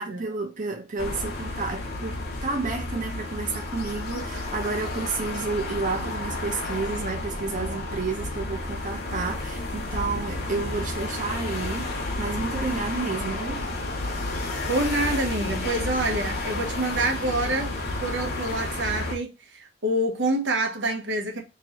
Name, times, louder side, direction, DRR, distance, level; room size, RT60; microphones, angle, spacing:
voice 1, 0.0-13.7, right 4 dB, 45° right, 0.8 m, -31 dB
sound 1, 1.0-19.1, left 2 dB, 60° left, 1.0 m, -31 dB
voice 2, 14.7-17.7 18.0-21.4, right 2 dB, 75° right, 0.9 m, -27 dB
3.0 x 2.9 x 4.1 m
head